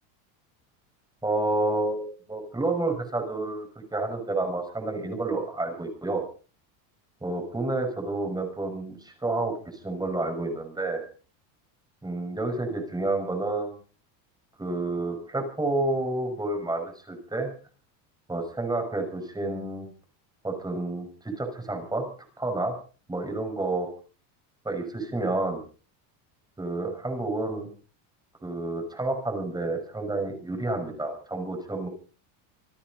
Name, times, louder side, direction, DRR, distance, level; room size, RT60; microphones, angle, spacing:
voice 1, 1.2-3.7 3.9-6.2 7.2-11.0 12.0-13.8 14.6-17.5 18.3-19.9 20.4-22.1 22.4-22.7 23.1-23.9 24.6-25.6 26.6-27.7 28.4-31.9, right 2 dB, 10° right, 4 dB, 6.0 m, -29 dB
27.0 x 10.0 x 5.3 m, 0.40 s
cardioid pair, 140°, 46 cm